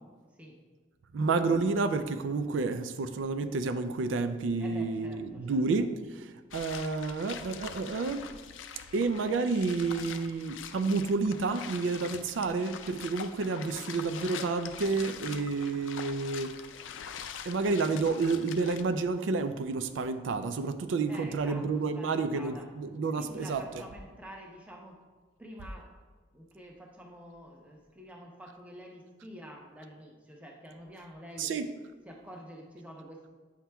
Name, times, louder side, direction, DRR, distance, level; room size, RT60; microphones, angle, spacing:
voice 1, 1.1-8.2 8.9-16.5 17.5-23.6 31.4-31.7, right 4 dB, 85° right, 10 dB, 0.4 m, -30 dB
voice 2, 4.6-5.6 16.9-17.1 21.1-22.7 23.2-25.0 25.4-25.9 26.3-31.5 32.0-33.3, equal, 5° right, 0 dB, 0.7 m, -48 dB
sound 1, 6.5-18.8, left 7 dB, 85° left, 0.4 m, -44 dB
8.4 x 5.8 x 2.3 m, 1.4 s
head